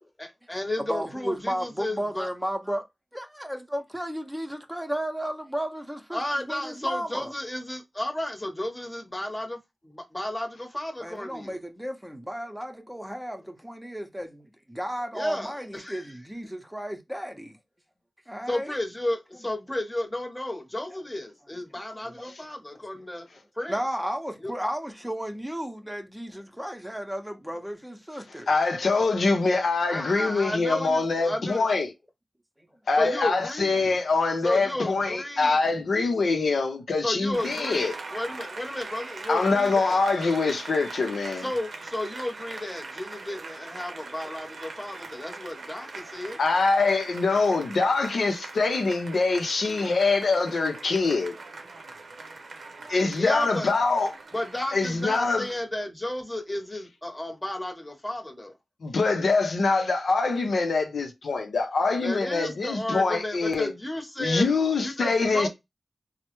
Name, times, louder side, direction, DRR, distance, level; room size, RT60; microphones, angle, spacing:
voice 1, 0.2-2.3 6.1-11.6 15.1-16.1 18.5-23.3 23.5-23.8 24.4-24.5 29.9-31.6 33.0-33.8 34.4-35.6 37.0-40.0 41.4-46.4 53.1-53.7 54.3-58.6 62.0-64.5 64.8-65.5, left 1 dB, 20° left, 0.9 m, -33 dB
voice 2, 0.9-2.8 3.1-6.2 6.5-7.3 11.0-17.6 18.3-18.7 22.2-22.3 23.7-28.5, equal, 5° right, 0.7 m, -33 dB
voice 3, 28.5-31.9 32.9-37.9 39.3-41.5 46.4-51.4 52.9-54.1 54.7-55.4 58.8-63.7 64.2-65.5, left 3 dB, 90° left, 0.6 m, -24 dB
Applause, 37.3-55.6, right 3 dB, 85° right, 0.6 m, -41 dB
3.2 x 2.1 x 2.9 m
cardioid pair, 45°, 0 cm